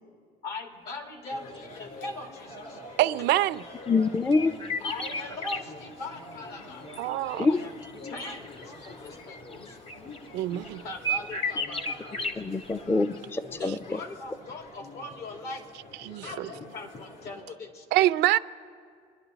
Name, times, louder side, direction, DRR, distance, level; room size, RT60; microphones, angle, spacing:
voice 1, 0.4-2.8 4.8-6.9 7.5-7.7 8.0-9.8 10.6-12.7 13.6-15.7 16.0-17.9, left 2 dB, 75° left, 2.2 m, -40 dB
sound 1, 1.3-17.4, left 2 dB, 55° left, 3.0 m, -46 dB
voice 2, 3.0-3.6 7.0-7.5 10.3-10.8 16.0-16.5 17.9-18.4, right 16 dB, 85° right, 0.5 m, -25 dB
sound 2, 3.2-5.6 6.3-12.7 13.0-13.2, left 1 dB, 30° left, 0.8 m, -35 dB
voice 3, 3.9-4.5 7.4-7.6 12.4-13.8, left 3 dB, 15° left, 0.4 m, -25 dB
28.5 x 11.0 x 4.0 m
cardioid pair, 110°, 17 cm